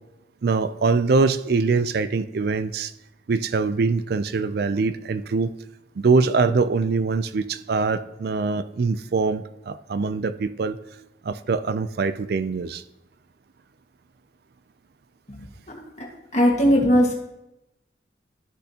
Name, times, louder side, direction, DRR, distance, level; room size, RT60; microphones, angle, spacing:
voice 1, 0.4-2.9 3.3-5.5 6.0-10.8 11.2-12.8, right 4 dB, 55° right, 14 dB, 0.4 m, -23 dB
voice 2, 15.7-16.1 16.3-17.1, equal, 35° left, -1 dB, 1.6 m, -19 dB
12.0 x 6.7 x 2.9 m, 0.91 s
head